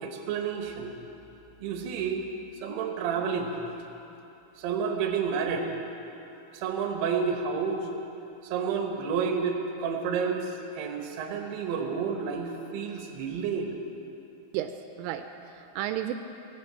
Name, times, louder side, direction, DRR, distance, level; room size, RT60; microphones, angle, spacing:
voice 1, 0.0-0.9 1.6-2.3 2.6-3.6 4.6-5.7 6.5-7.9 8.4-13.7, right 6 dB, 70° right, 3 dB, 2.9 m, -30 dB
voice 2, 14.5-16.1, right 12 dB, 85° right, 7 dB, 3.1 m, -33 dB
17.5 x 8.4 x 7.6 m, 2.9 s
omnidirectional pair, 5.6 m